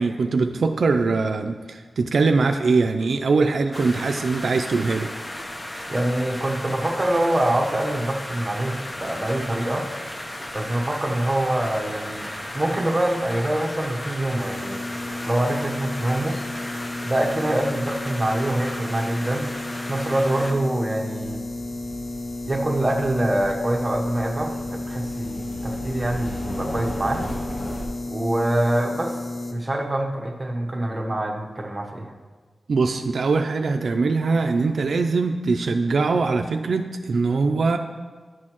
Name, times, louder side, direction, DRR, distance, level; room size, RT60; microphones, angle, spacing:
voice 1, 0.0-5.1 32.7-37.8, right 4 dB, 80° right, 6 dB, 0.3 m, -22 dB
sound 1, 3.7-20.5, left 1 dB, 25° left, 0.8 m, -35 dB
voice 2, 5.9-9.9 10.5-12.3 12.5-14.8 15.3-16.4 17.0-19.5 19.9-21.4 22.5-27.2 28.1-29.2 29.5-32.1, right 1 dB, 25° right, 0 dB, 0.9 m, -25 dB
sound 2, 14.4-29.5, left 2 dB, 45° left, 1.0 m, -33 dB
sound 3, 21.2-27.8, equal, 85° left, 1.6 m, -37 dB
11.0 x 6.3 x 3.0 m, 1.4 s
wide cardioid pair, 95°, 0 cm